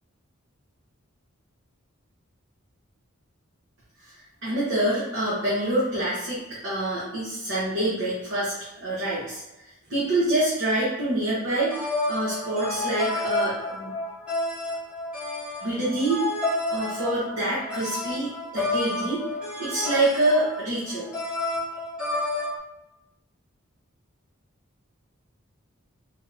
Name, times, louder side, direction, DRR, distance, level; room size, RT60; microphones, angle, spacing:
voice 1, 4.1-13.9 15.6-16.3 16.7-19.3 19.6-21.1, right 1 dB, 60° right, -9 dB, 1.0 m, -26 dB
sound 1, 11.5-22.6, left 2 dB, 5° right, 0.8 m, -30 dB
3.3 x 3.0 x 2.5 m, 0.98 s
head